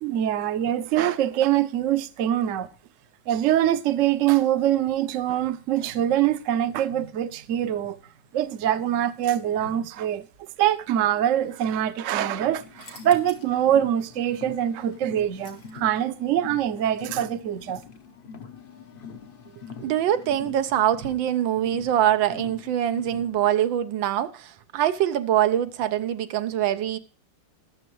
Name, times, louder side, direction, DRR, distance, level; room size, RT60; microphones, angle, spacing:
voice 1, 0.0-2.7 3.3-8.0 8.3-17.8, right 11 dB, 60° right, 0.9 m, -24 dB
Car, 12.4-23.5, left 6 dB, 55° left, 0.6 m, -44 dB
sound 1, 12.7-13.6 14.0-14.1 14.8-16.1, left 4 dB, 85° left, 2.7 m, -49 dB
voice 2, 19.8-27.0, right 11 dB, 90° right, 1.5 m, -24 dB
20.5 x 6.9 x 3.1 m
omnidirectional pair, 2.0 m